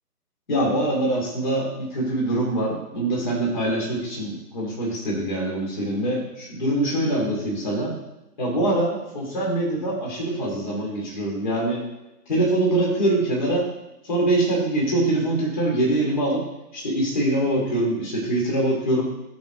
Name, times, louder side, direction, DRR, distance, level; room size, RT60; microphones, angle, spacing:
voice 1, 0.5-8.0 8.4-11.8 12.3-13.7 14.1-16.4 16.7-19.0, right 1 dB, 30° left, -3 dB, 3.0 m, -24 dB
14.0 x 5.2 x 3.9 m, 0.93 s
hypercardioid pair, 165°, 47 cm